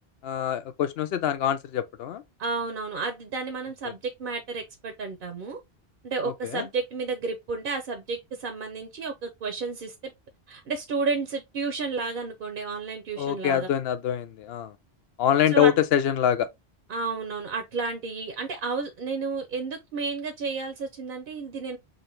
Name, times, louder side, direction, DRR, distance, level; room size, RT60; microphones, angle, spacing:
voice 1, 0.2-2.2 6.2-6.7 13.2-14.7 15.2-16.5, left 10 dB, 70° left, 0.8 m, -25 dB
voice 2, 2.4-5.6 6.0-9.9 10.5-13.7 15.5-15.7 16.9-21.8, right 4 dB, 60° right, 0.8 m, -31 dB
3.8 x 2.9 x 3.2 m
omnidirectional pair, 1.1 m